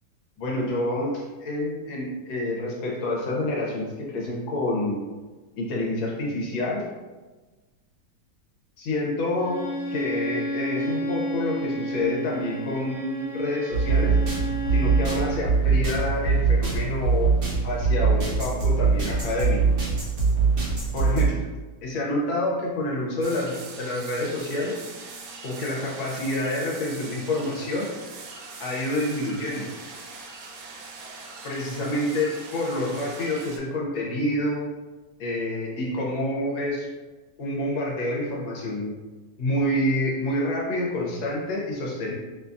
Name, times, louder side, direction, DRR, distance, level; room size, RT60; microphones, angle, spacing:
voice 1, 0.4-5.0 5.6-6.9 8.8-14.2 14.7-17.3 17.6-19.6 20.9-21.3 21.8-24.8 25.4-27.9 28.6-29.7 31.4-34.7 35.2-36.9 37.4-39.0 39.4-42.1, left 1 dB, 80° left, -3 dB, 1.6 m, -28 dB
Bowed string instrument, 9.4-15.5, right 1 dB, 45° left, 0.8 m, -31 dB
sound 1, 13.7-21.3, right 5 dB, 45° right, 1.1 m, -22 dB
sound 2, 23.2-33.6, right 4 dB, 85° right, 1.4 m, -42 dB
5.4 x 2.3 x 2.5 m, 1.2 s
omnidirectional pair, 2.1 m